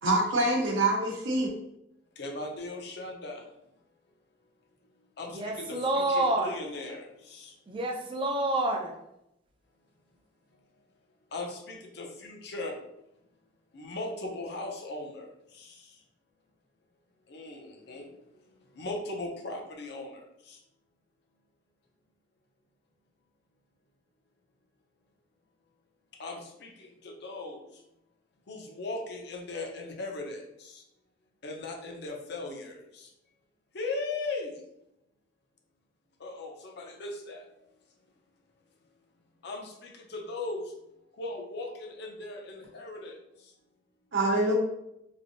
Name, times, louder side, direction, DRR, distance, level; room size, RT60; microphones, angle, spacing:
voice 1, 0.0-1.5 44.1-44.5, right 2 dB, 80° right, 0.8 m, -25 dB
voice 2, 2.2-3.4 5.2-7.5 11.3-12.8 13.7-15.7 17.3-18.1 18.8-20.6 26.2-27.6 28.5-30.8 31.4-33.1 33.7-34.5 36.2-37.4 39.4-40.6 41.2-43.1, left 2 dB, 60° left, 0.6 m, -38 dB
voice 3, 5.3-6.6 7.7-8.9, right 1 dB, 25° right, 0.4 m, -28 dB
3.3 x 2.6 x 2.5 m
head